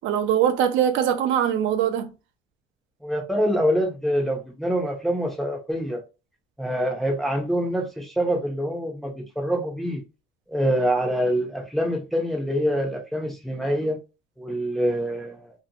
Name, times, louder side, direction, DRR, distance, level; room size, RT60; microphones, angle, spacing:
voice 1, 0.0-2.1, right 9 dB, 70° right, 0.5 m, -22 dB
voice 2, 3.0-6.0 6.6-10.0 10.5-14.0 14.4-15.5, equal, ahead, 0.5 m, -25 dB
2.6 x 2.1 x 2.7 m
cardioid pair, 150°, 20 cm